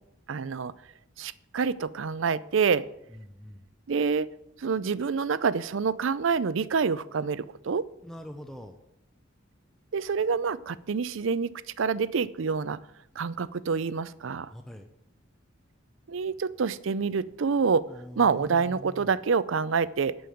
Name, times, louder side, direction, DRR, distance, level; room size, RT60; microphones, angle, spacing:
voice 1, 0.3-0.7 1.2-2.8 3.9-4.3 4.6-7.8 9.9-12.8 13.2-14.5 16.1-17.8 18.2-20.2, right 5 dB, 70° right, 17 dB, 0.5 m, -27 dB
voice 2, 3.1-3.6 8.0-8.8 14.5-14.9 17.9-19.1, equal, ahead, 4 dB, 0.6 m, -43 dB
11.0 x 5.4 x 7.8 m, 0.80 s
head